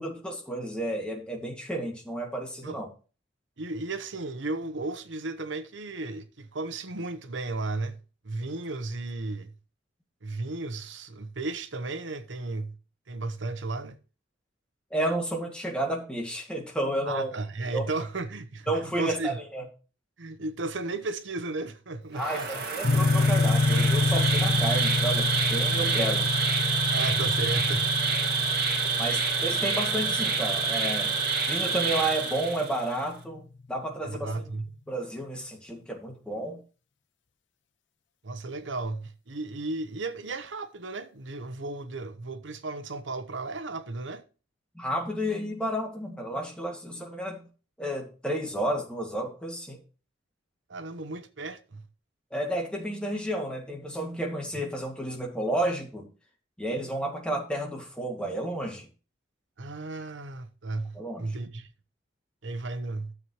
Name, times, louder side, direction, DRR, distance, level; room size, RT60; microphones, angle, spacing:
voice 1, 0.0-2.9 14.9-17.3 17.7-17.9 18.7-19.6 22.1-26.3 29.0-31.1 31.4-33.4 33.7-34.4 34.9-36.6 44.8-47.4 47.8-49.8 52.3-56.0 56.6-58.9 60.9-61.3, right 1 dB, 5° left, 2.0 m, -31 dB
voice 2, 3.6-8.0 8.2-9.5 10.2-12.7 13.1-14.0 17.1-19.4 20.2-22.7 26.9-27.9 34.0-34.7 38.2-44.2 50.7-51.8 59.6-61.7 62.4-63.1, right 2 dB, 80° right, 0.9 m, -34 dB
Insect, 22.1-32.9, right 5 dB, 55° right, 2.2 m, -27 dB
sound 1, 22.8-33.0, left 3 dB, 80° left, 0.8 m, -28 dB
13.0 x 7.2 x 3.1 m
head